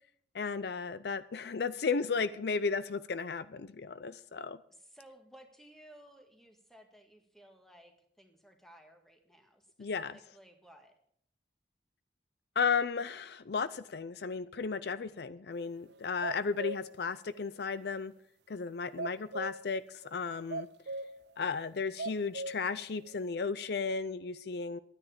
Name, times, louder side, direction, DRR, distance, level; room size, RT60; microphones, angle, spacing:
voice 1, 0.3-4.6 9.8-10.2 12.6-18.1 18.5-20.7 21.4-24.8, left 5 dB, 60° left, 15 dB, 0.5 m, -34 dB
voice 2, 4.7-10.9, right 1 dB, ahead, 4 dB, 1.9 m, -58 dB
sound 1, 15.9-16.9 17.3-17.4 19.0-19.7 20.5-21.3 21.6-21.7 22.0-22.8 23.1-23.2, right 3 dB, 65° right, 0.5 m, -39 dB
12.5 x 9.8 x 7.2 m, 0.64 s
head